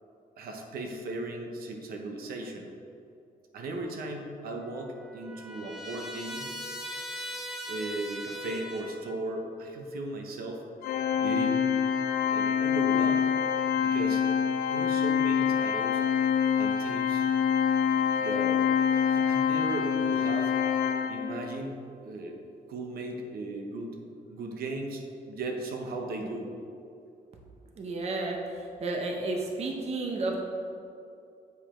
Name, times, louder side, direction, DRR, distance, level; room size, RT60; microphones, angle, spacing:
voice 1, 0.4-2.7 3.5-6.6 7.7-10.6 11.1-11.6 12.3-13.2 13.8-14.2 14.7-16.0 16.6-17.2 18.2-18.6 18.9-20.7 21.1-22.4 22.7-24.0 24.3-26.5, right 2 dB, 80° right, 2 dB, 0.9 m, -37 dB
Trumpet, 4.5-9.2, equal, 5° right, 0.8 m, -40 dB
Organ, 10.8-21.6, left 8 dB, 80° left, 0.4 m, -26 dB
voice 2, 27.8-28.4 28.8-30.4, right 2 dB, 45° right, 1 dB, 0.8 m, -31 dB
8.1 x 5.1 x 4.4 m, 2.6 s
wide cardioid pair, 165°, 15 cm